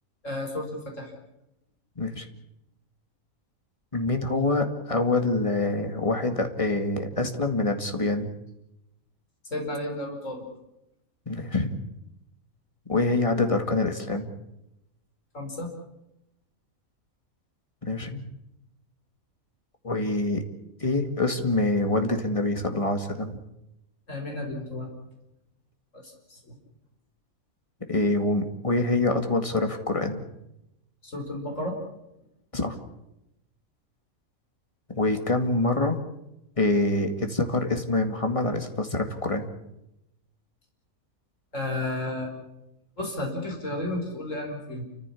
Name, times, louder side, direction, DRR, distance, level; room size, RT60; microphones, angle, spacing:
voice 1, 0.2-1.1 9.5-10.5 15.3-15.7 24.1-24.9 25.9-26.6 31.0-31.8 41.5-42.3 43.0-44.8, left 1 dB, 60° left, 1 dB, 5.1 m, -32 dB
voice 2, 2.0-2.3 3.9-8.3 11.3-11.7 12.9-14.3 17.8-18.2 19.8-20.4 20.8-23.4 27.9-30.2 32.5-32.8 34.9-36.0 36.6-39.5, left 2 dB, 20° left, 6 dB, 2.2 m, -25 dB
29.5 x 15.0 x 8.5 m, 0.88 s
omnidirectional pair, 1.5 m